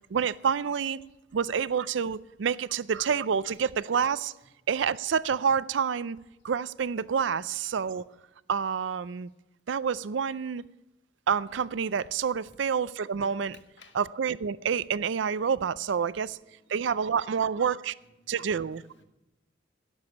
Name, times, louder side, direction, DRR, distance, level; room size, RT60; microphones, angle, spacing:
voice 1, 0.1-1.0 1.3-4.3 4.7-6.2 6.4-8.0 8.5-9.3 9.7-10.6 11.3-13.6 13.9-16.4 16.7-17.9 18.3-18.8, right 6 dB, 70° right, 0.4 m, -28 dB
voice 2, 13.5-14.0 16.5-16.7 17.6-17.7 18.2-19.0, left 4 dB, 65° left, 1.6 m, -58 dB
16.5 x 7.0 x 8.5 m
head